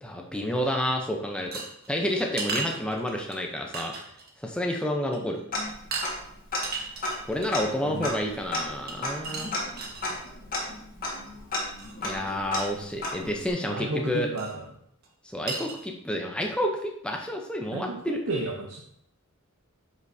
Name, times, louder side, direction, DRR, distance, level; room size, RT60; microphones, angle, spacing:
voice 1, 0.0-1.6 1.9-3.9 4.4-5.4 7.3-9.5 12.0-14.3 15.2-18.2, left 1 dB, 5° left, 1 dB, 0.6 m, -29 dB
sound 1, 1.5-3.4 3.7-4.3 4.6-4.8 5.1-5.4 5.9-6.1 6.5-7.6 8.9-10.2 11.8-11.9 12.3-12.4 12.6-12.7 14.4-14.6 15.0-15.1 15.5-15.8, right 4 dB, 45° right, 1.1 m, -35 dB
Tick-tock, 5.5-6.3 6.5-6.6 7.0-13.5, left 2 dB, 40° left, 1.6 m, -33 dB
voice 2, 7.8-8.1 13.7-14.6 17.7-18.8, right 2 dB, 80° right, 0 dB, 0.9 m, -32 dB
8.2 x 5.3 x 2.7 m, 0.69 s
head